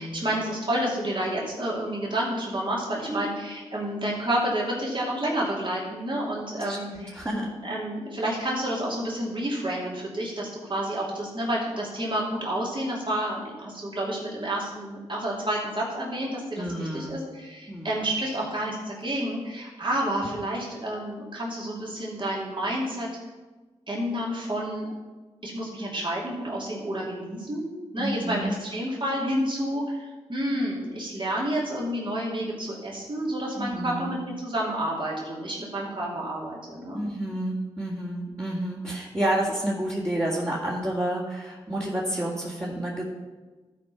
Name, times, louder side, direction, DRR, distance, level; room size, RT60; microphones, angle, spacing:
voice 1, 0.0-7.1 7.6-23.1 23.9-24.9 25.4-37.0, right 1 dB, 45° right, -4 dB, 2.9 m, -30 dB
voice 2, 6.6-7.5 16.6-17.2 17.7-18.1 28.0-28.5 33.6-34.2 36.9-43.0, right 1 dB, 25° right, -6 dB, 2.3 m, -30 dB
12.0 x 4.6 x 5.8 m, 1.3 s
supercardioid pair, 40°, 12 cm